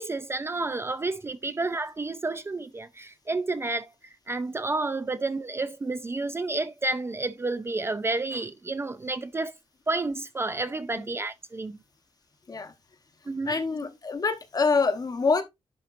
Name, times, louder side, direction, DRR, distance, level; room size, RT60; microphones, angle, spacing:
voice 1, 0.0-3.9 4.3-9.5 9.9-11.8 13.3-13.5, right 2 dB, 25° right, 0.4 m, -30 dB
voice 2, 13.4-15.4, left 4 dB, 35° left, 1.1 m, -26 dB
11.0 x 4.3 x 2.5 m
wide cardioid pair, 145°, 11 cm